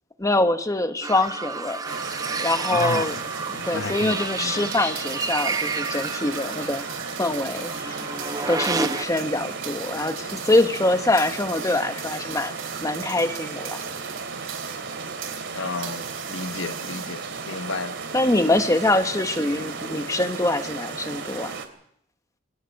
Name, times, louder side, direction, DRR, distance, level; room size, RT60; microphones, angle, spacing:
voice 1, 0.2-2.0 2.4-3.1 3.6-6.9 7.2-8.0 8.5-12.5 12.8-13.8 18.1-21.6, left 2 dB, 15° left, 9 dB, 1.2 m, -24 dB
sound 1, 1.0-9.0, right 4 dB, 20° right, 0.7 m, -31 dB
sound 2, 1.9-21.7, right 4 dB, 65° right, 2.7 m, -34 dB
voice 2, 2.7-3.2 3.5-4.8 15.5-18.0, left 3 dB, 70° left, 10 dB, 1.2 m, -32 dB
sound 3, 4.6-15.5 15.8-17.4, right 10 dB, 80° right, 4.5 m, -40 dB
23.0 x 18.0 x 6.4 m, 0.70 s
head